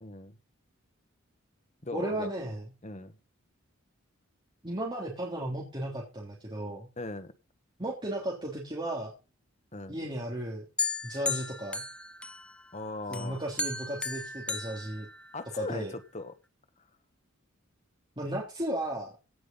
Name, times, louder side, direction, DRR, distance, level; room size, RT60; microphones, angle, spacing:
voice 1, 0.0-0.4 1.8-2.3 2.8-3.2 7.0-7.3 9.7-9.9 12.7-13.4 15.3-16.3, left 2 dB, 35° left, 9 dB, 1.4 m, -38 dB
voice 2, 1.9-2.6 4.6-6.9 7.8-9.1 9.9-10.6 11.0-11.8 13.1-15.1 15.6-15.9 18.2-19.1, right 1 dB, 25° right, -4 dB, 3.4 m, -35 dB
sound 1, 10.8-12.7 13.1-15.7, left 3 dB, 5° left, 0.8 m, -35 dB
17.5 x 6.1 x 5.5 m, 0.30 s
head